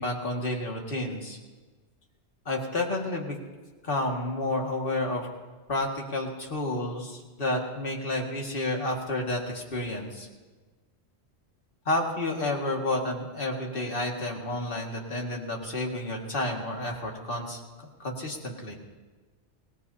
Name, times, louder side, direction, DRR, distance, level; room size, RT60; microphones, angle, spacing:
voice 1, 0.0-1.4 2.5-3.4 3.8-5.3 5.7-10.3 11.9-17.6 18.0-18.8, left 1 dB, 55° left, 0 dB, 2.2 m, -30 dB
24.0 x 18.0 x 2.8 m, 1.3 s
omnidirectional pair, 1.1 m